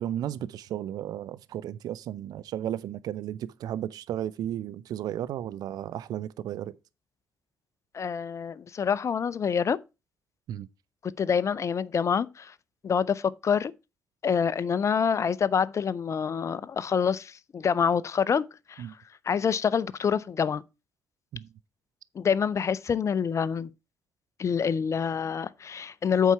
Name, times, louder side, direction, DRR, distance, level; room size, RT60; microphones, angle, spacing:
voice 1, 0.0-6.7 10.5-10.7 18.8-18.9 21.3-21.5, right 11 dB, 60° right, 0.5 m, -34 dB
voice 2, 7.9-9.8 11.0-12.5 12.8-13.7 14.2-18.9 19.2-20.6 22.1-23.7 24.4-26.3, left 7 dB, 40° left, 0.5 m, -26 dB
8.2 x 4.7 x 5.6 m
hypercardioid pair, 45°, 8 cm